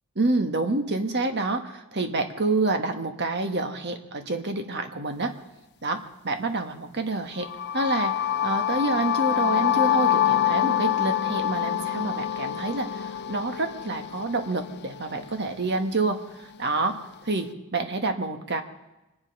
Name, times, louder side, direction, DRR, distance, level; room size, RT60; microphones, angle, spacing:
voice 1, 0.1-5.3 5.8-18.6, right 2 dB, 50° right, 6 dB, 1.5 m, -28 dB
sound 1, 7.4-15.3, left 11 dB, 50° left, 0.5 m, -26 dB
24.5 x 10.5 x 5.4 m, 1.0 s
head